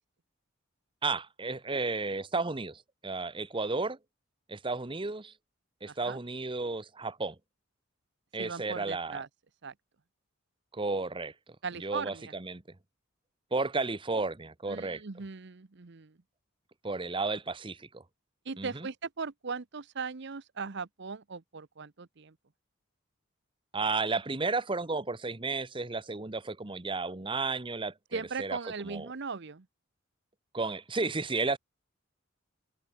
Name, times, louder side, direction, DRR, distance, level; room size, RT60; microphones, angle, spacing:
voice 1, 1.0-4.0 4.5-5.3 5.8-7.4 8.3-9.2 10.7-11.3 11.8-12.6 13.5-15.0 16.8-18.0 18.6-18.9 23.7-28.6 28.8-29.1 30.5-31.6, right 3 dB, 25° right, 1.0 m, -33 dB
voice 2, 5.9-6.2 8.4-9.3 9.6-9.7 11.6-12.4 14.7-16.2 18.4-22.4 28.1-29.7, right 5 dB, 60° right, 0.8 m, -39 dB
head